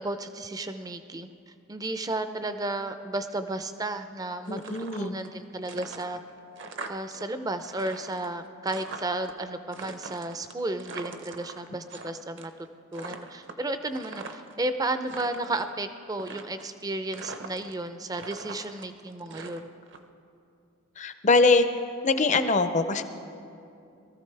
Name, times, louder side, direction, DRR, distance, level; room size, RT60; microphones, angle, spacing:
voice 1, 0.0-6.2 6.9-12.5 12.9-19.7, right 2 dB, 15° right, 9 dB, 0.4 m, -33 dB
sound 1, 4.4-5.3 5.6-7.2 7.5-9.3 9.7-12.1 12.4-12.7 12.9-14.6 15.0-15.7 16.2-16.8 17.1-17.9 18.1-20.0, right 4 dB, 55° right, 0.7 m, -42 dB
voice 2, 4.5-5.2 21.0-21.7 22.0-23.0, left 3 dB, 35° left, 9 dB, 0.5 m, -22 dB
22.5 x 14.0 x 3.3 m, 2.6 s
head